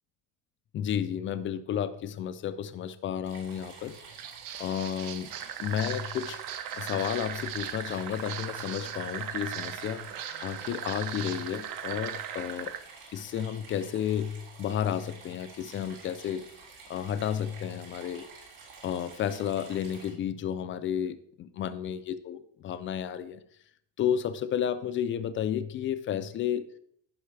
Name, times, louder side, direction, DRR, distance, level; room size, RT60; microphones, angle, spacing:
voice 1, 0.7-3.9 4.6-5.3 5.6-6.4 6.8-10.1 10.4-12.7 13.1-16.5 16.9-18.2 18.8-23.4 24.0-26.6, left 9 dB, 30° left, 11 dB, 0.3 m, -32 dB
sound 1, 3.2-20.1, right 4 dB, 75° right, 3.8 m, -50 dB
Walk footsteps, 3.9-12.2, right 9 dB, 90° right, 1.0 m, -44 dB
sound 2, 5.3-12.8, right 10 dB, 50° right, 0.8 m, -38 dB
15.0 x 5.6 x 3.3 m, 0.67 s
cardioid pair, 160°, 43 cm